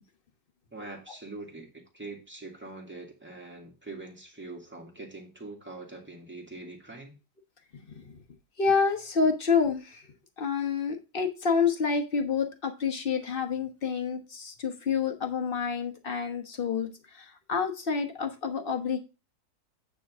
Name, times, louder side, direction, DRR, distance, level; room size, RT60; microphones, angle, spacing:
voice 1, 0.7-7.1, right 2 dB, 5° right, 1.9 m, -43 dB
voice 2, 7.9-8.2 8.6-10.1 10.4-19.0, left 5 dB, 40° left, 1.2 m, -28 dB
9.2 x 3.5 x 6.0 m
omnidirectional pair, 1.7 m